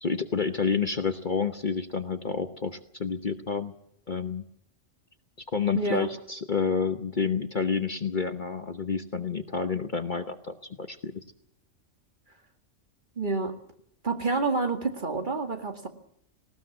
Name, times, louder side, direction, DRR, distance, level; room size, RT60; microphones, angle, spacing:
voice 1, 0.0-3.7 4.1-4.4 5.5-11.2, left 5 dB, 40° left, 9 dB, 1.1 m, -29 dB
voice 2, 5.7-6.1 13.2-13.5 14.0-15.9, right 3 dB, 40° right, 6 dB, 2.2 m, -28 dB
19.0 x 18.5 x 7.3 m, 0.70 s
omnidirectional pair, 1.3 m